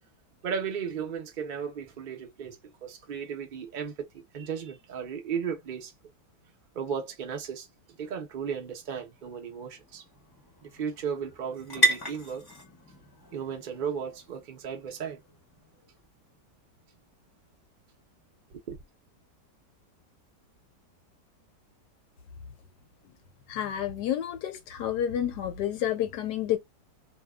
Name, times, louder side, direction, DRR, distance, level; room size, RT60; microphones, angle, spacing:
voice 1, 0.4-5.9 6.7-7.7 8.0-10.0 10.6-12.5 13.3-15.2 18.5-18.8, right 7 dB, 65° right, 0.4 m, -35 dB
sound 1, 8.6-16.1, right 1 dB, 25° left, 0.5 m, -34 dB
voice 2, 23.5-26.6, left 10 dB, 75° left, 1.1 m, -29 dB
2.7 x 2.2 x 2.2 m
omnidirectional pair, 1.9 m